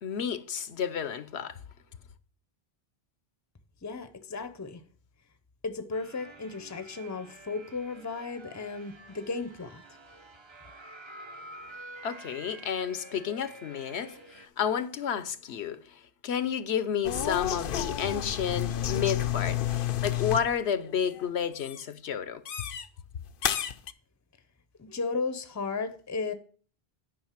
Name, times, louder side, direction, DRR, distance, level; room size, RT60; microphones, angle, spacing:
voice 1, 0.0-1.6 12.0-22.4, left 8 dB, 80° left, 1.0 m, -31 dB
voice 2, 3.8-4.8 5.6-9.8 24.8-26.3, left 4 dB, 20° left, 0.6 m, -35 dB
sound 1, 5.9-14.5, right 1 dB, 30° right, 0.8 m, -49 dB
sound 2, 17.0-20.6 20.8-21.3 21.6-21.8 22.5-22.9 23.4-23.9, left 11 dB, 60° left, 0.7 m, -31 dB
10.5 x 5.4 x 5.8 m
omnidirectional pair, 1.1 m